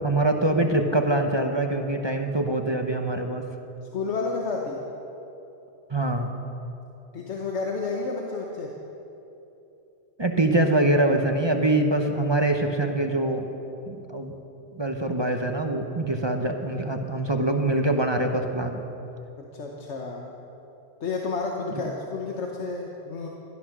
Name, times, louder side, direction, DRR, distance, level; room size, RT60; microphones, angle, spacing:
voice 1, 0.0-3.4 5.9-6.4 10.2-13.4 13.9-14.3 14.7-18.8 21.7-21.9, right 2 dB, 25° right, 4 dB, 0.9 m, -24 dB
voice 2, 3.9-4.8 7.1-8.7 19.4-20.3 21.0-23.3, left 4 dB, 85° left, 0 dB, 1.5 m, -31 dB
17.0 x 13.0 x 6.1 m, 3.0 s
omnidirectional pair, 1.1 m